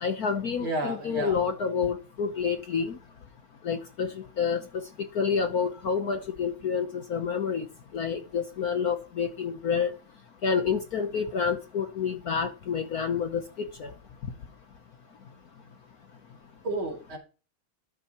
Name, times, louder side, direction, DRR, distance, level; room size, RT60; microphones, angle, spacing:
voice 1, 0.0-2.9 3.7-4.1 4.4-4.6 5.2-7.6 7.9-9.9 10.4-13.4 13.8-13.9, left 6 dB, 55° left, 1.2 m, -28 dB
voice 2, 0.6-1.4 16.6-17.2, right 2 dB, 75° right, 3.5 m, -31 dB
12.5 x 9.1 x 3.0 m
omnidirectional pair, 2.3 m